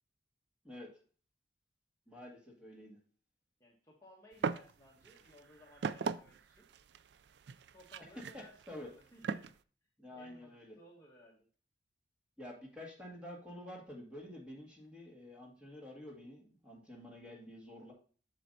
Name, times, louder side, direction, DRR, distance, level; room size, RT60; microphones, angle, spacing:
voice 1, 2.1-3.0 8.2-8.9 10.0-10.8 12.4-17.9, left 1 dB, 5° right, -2 dB, 2.0 m, -49 dB
voice 2, 3.6-6.7 7.7-9.5 10.1-11.5, left 1 dB, 15° left, -3 dB, 1.2 m, -60 dB
sound 1, 4.4-4.7 5.0-9.5, right 5 dB, 65° right, 0.3 m, -38 dB
7.4 x 7.1 x 2.7 m, 0.42 s
head